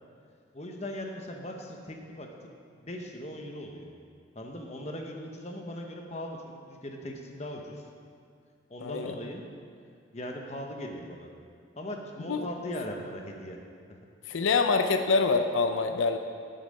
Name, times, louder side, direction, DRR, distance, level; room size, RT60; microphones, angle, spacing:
voice 1, 0.5-3.9 4.3-7.8 8.7-9.4 10.1-11.3 11.8-13.6, left 1 dB, 35° left, 2 dB, 1.0 m, -39 dB
voice 2, 8.8-9.2 12.3-12.5 14.3-16.2, left 4 dB, 75° left, 7 dB, 0.5 m, -25 dB
9.8 x 8.1 x 5.4 m, 2.4 s
head